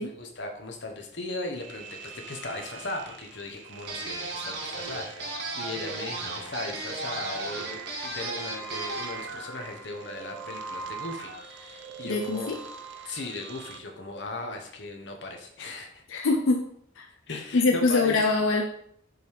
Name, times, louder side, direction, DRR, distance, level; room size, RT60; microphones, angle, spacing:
voice 1, 0.0-12.5 13.0-16.0 17.3-18.2, left 2 dB, 65° left, 3 dB, 1.0 m, -37 dB
sound 1, 1.6-13.8, right 4 dB, 70° right, 0.7 m, -42 dB
sound 2, 3.9-9.2, right 2 dB, 55° right, 1.3 m, -35 dB
voice 2, 12.0-12.5 16.1-16.7 17.0-17.1 17.5-18.6, left 3 dB, 90° left, 3 dB, 0.5 m, -24 dB
6.0 x 3.5 x 4.7 m, 0.67 s
head